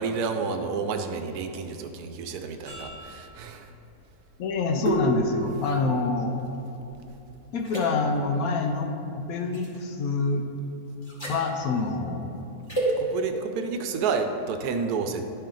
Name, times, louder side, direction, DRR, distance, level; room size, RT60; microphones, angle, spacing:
voice 1, 0.0-3.7 13.0-15.2, right 5 dB, 75° right, 6 dB, 1.1 m, -30 dB
sound 1, 2.6-7.2 7.6-7.8 9.5-9.8 11.0-11.4 12.7-12.9, right 1 dB, 20° left, 1.3 m, -31 dB
voice 2, 4.4-6.3 7.5-10.5 11.2-12.3, left 3 dB, 70° left, 4 dB, 1.0 m, -26 dB
10.5 x 4.4 x 3.8 m, 3.0 s
omnidirectional pair, 1.7 m